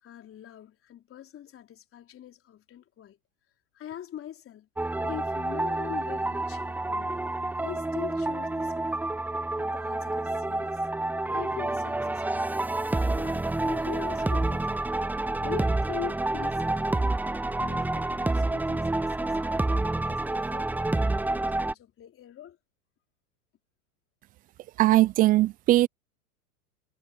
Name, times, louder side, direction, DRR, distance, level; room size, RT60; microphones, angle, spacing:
voice 1, 0.0-3.2 3.7-4.7 5.0-7.2 7.6-9.0 9.6-10.8 11.3-12.5 13.1-14.9 15.4-17.2 17.6-19.4 19.7-22.6, left 10 dB, 30° left, 3.9 m, -43 dB
sound 1, 4.8-21.7, right 2 dB, 5° right, 0.8 m, -28 dB
voice 2, 24.8-25.9, right 16 dB, 20° right, 0.4 m, -20 dB
hypercardioid pair, 100°, 46 cm